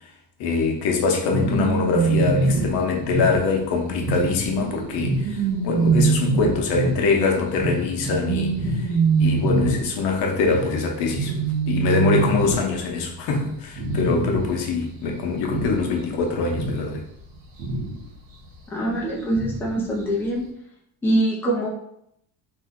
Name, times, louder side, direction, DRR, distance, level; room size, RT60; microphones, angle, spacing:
voice 1, 0.4-8.9 9.2-11.3 11.7-17.0, left 4 dB, 75° left, 0.8 m, -23 dB
sound 1, 1.3-13.1 13.3-13.5 13.8-14.7 15.0-16.1 16.4-18.0 19.3-19.7 20.2-20.3, right 4 dB, 60° right, 0.8 m, -24 dB
voice 2, 18.7-20.4 21.0-21.7, right 1 dB, 5° left, 0.5 m, -23 dB
2.8 x 2.2 x 3.6 m
cardioid pair, 165°, 40 cm